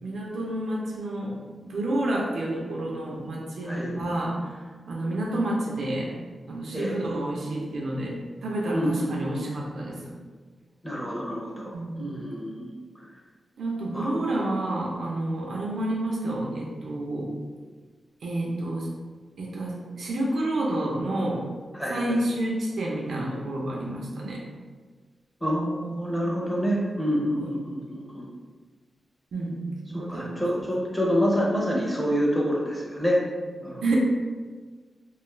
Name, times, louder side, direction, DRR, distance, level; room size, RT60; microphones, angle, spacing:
voice 1, 0.0-6.1 6.5-10.1 11.7-12.1 13.6-17.3 18.2-18.9 19.4-21.4 21.9-24.4 27.4-27.5 29.3-29.6 29.9-30.4 33.8-34.0, right 1 dB, 75° right, -2 dB, 0.5 m, -29 dB
voice 2, 8.7-9.3 10.8-12.7 13.0-13.1 13.9-14.2 21.7-22.0 25.4-28.3 29.9-33.2 33.6-33.8, equal, 10° left, -4 dB, 0.5 m, -27 dB
2.5 x 2.3 x 3.1 m, 1.5 s
wide cardioid pair, 150°, 0 cm